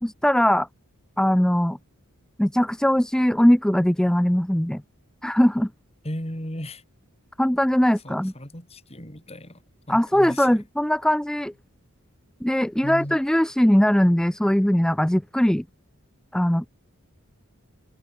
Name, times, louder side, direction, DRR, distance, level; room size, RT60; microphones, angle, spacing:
voice 1, 0.0-0.7 1.2-1.8 2.4-4.8 5.2-5.7 7.4-8.3 9.9-11.5 12.4-15.6 16.3-16.7, equal, 5° left, 0.4 m, -20 dB
voice 2, 6.0-6.8 8.0-9.6 9.9-10.6 12.8-13.2, left 1 dB, 30° left, 5.9 m, -35 dB
head